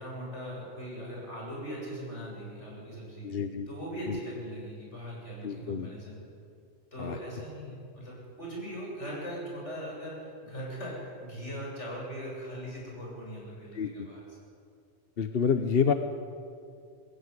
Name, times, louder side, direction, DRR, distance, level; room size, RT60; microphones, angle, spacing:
voice 1, 0.0-3.3 3.7-6.3 6.9-14.4, equal, 85° left, -4 dB, 8.0 m, -40 dB
voice 2, 3.2-3.7 4.1-4.2 5.4-5.9 7.0-7.2 13.7-14.1 15.2-15.9, left 6 dB, 60° left, 8 dB, 1.1 m, -28 dB
21.0 x 15.5 x 9.7 m, 2.3 s
omnidirectional pair, 1.2 m